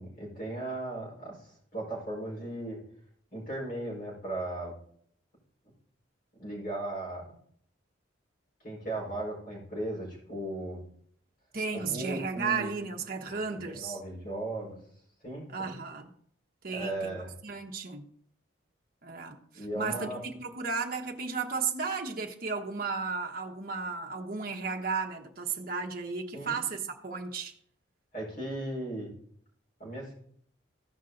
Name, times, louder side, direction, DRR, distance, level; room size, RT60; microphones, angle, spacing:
voice 1, 0.0-2.8 3.3-4.8 6.4-7.3 8.6-10.8 11.7-12.7 13.4-14.8 15.2-15.8 16.7-17.3 19.5-20.2 26.3-26.6 28.1-29.1 29.8-30.1, right 1 dB, 45° left, 4.8 m, -37 dB
voice 2, 11.5-14.0 15.5-16.1 16.6-17.1 17.4-18.1 19.0-27.5, right 5 dB, 45° right, 1.1 m, -34 dB
15.5 x 5.5 x 3.9 m
head